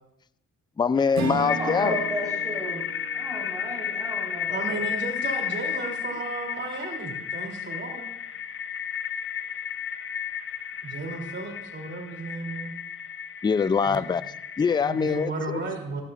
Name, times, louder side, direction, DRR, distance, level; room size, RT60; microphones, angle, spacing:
voice 1, 0.8-2.0 13.4-14.2 14.6-15.6, left 6 dB, 15° left, 16 dB, 0.4 m, -23 dB
sound 1, 1.0-15.3, left 7 dB, 45° left, 0.7 m, -33 dB
Strum, 1.1-5.8, right 8 dB, 70° right, 1.1 m, -37 dB
voice 2, 1.5-2.8 3.1-4.9, equal, 10° right, -2 dB, 4.4 m, -34 dB
voice 3, 4.5-8.1 10.8-12.7 13.8-14.0 14.8-16.0, right 3 dB, 35° right, 0 dB, 3.2 m, -34 dB
15.0 x 13.0 x 2.5 m, 0.83 s
cardioid pair, 90°, 30 cm